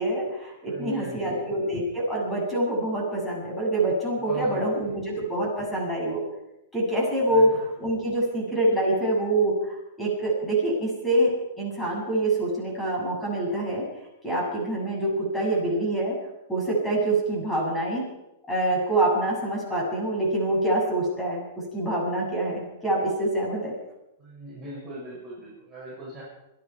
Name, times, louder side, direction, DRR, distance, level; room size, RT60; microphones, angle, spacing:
voice 1, 0.0-6.2 6.7-13.8 14.2-16.2 16.5-18.1 18.5-23.7, right 1 dB, 10° left, -3 dB, 7.4 m, -25 dB
voice 2, 0.7-1.4 4.2-4.7 7.3-7.5 24.2-26.2, right 1 dB, 15° right, -8 dB, 6.8 m, -39 dB
27.5 x 11.0 x 4.8 m, 0.89 s
hypercardioid pair, 145°, 0 cm